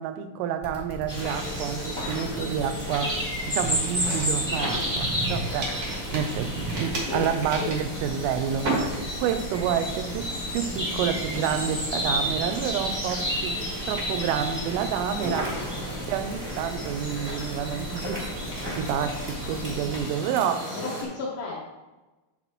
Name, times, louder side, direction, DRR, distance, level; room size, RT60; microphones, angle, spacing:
voice 1, 0.0-3.2 3.5-13.6 13.9-15.6 16.1-18.5 18.7-20.7, right 8 dB, 85° right, 9 dB, 3.1 m, -29 dB
sound 1, 0.6-20.0, right 1 dB, 20° left, 0.9 m, -41 dB
sound 2, 1.1-21.0, equal, 10° right, 1.1 m, -31 dB
sound 3, 3.8-5.3 5.6-9.4 9.8-10.1 10.6-12.9, right 2 dB, 70° right, 1.4 m, -34 dB
voice 2, 4.5-4.9 7.1-7.3 7.5-7.7 20.7-21.6, left 4 dB, 75° left, -4 dB, 2.6 m, -33 dB
10.0 x 6.7 x 3.0 m, 1.1 s
omnidirectional pair, 5.9 m